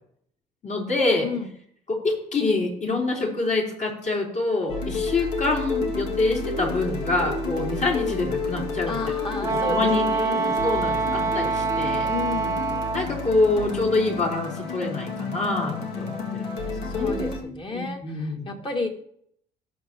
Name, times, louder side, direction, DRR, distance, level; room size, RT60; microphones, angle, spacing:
voice 1, 0.6-1.3 1.9-9.0 9.4-10.1 10.4-12.1 12.9-16.4 16.9-18.5, left 3 dB, 50° left, -2 dB, 4.1 m, -26 dB
sound 1, 4.7-17.4, left 3 dB, 85° left, 2.2 m, -31 dB
voice 2, 8.9-10.4 12.1-12.6 16.8-18.9, left 3 dB, 30° left, 2 dB, 2.1 m, -32 dB
Wind instrument woodwind instrument, 9.4-13.1, right 4 dB, 20° right, 0.9 m, -25 dB
18.5 x 7.0 x 3.0 m, 0.67 s
cardioid pair, 110°, 17 cm